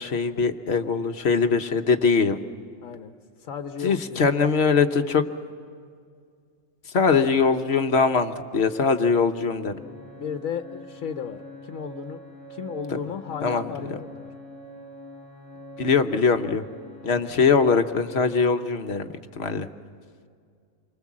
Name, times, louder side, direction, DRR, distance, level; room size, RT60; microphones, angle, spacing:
voice 1, 0.0-2.4 3.8-5.3 6.8-9.8 13.4-13.7 15.8-16.6 17.0-19.7, left 5 dB, 55° left, 8 dB, 1.2 m, -22 dB
voice 2, 2.8-3.1 3.4-4.3 10.1-12.2 12.5-14.3 17.1-17.2, left 7 dB, 80° left, 6 dB, 1.2 m, -34 dB
sound 1, 9.7-17.2, left 1 dB, 40° right, 8.4 m, -43 dB
28.5 x 24.5 x 7.4 m, 2.2 s
omnidirectional pair, 1.4 m